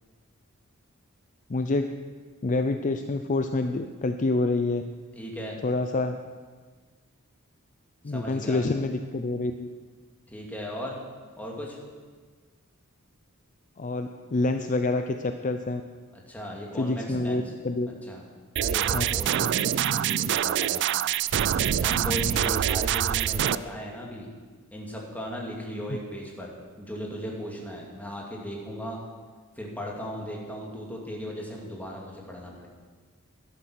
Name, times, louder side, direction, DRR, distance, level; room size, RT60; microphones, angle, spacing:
voice 1, 1.5-1.9 2.4-4.8 5.6-6.2 8.0-9.7 13.8-15.8 16.8-17.9 18.9-19.1 25.9-26.0, left 2 dB, 35° left, 7 dB, 0.5 m, -27 dB
voice 2, 5.1-5.6 8.1-8.6 10.3-11.0 11.4-11.8 16.1-17.4 17.9-18.2 18.6-20.9 21.8-24.3 24.7-29.0 29.6-32.7, equal, 5° left, -2 dB, 2.5 m, -37 dB
sound 1, 18.6-23.6, right 10 dB, 55° right, 0.4 m, -25 dB
12.0 x 11.5 x 6.3 m, 1.5 s
head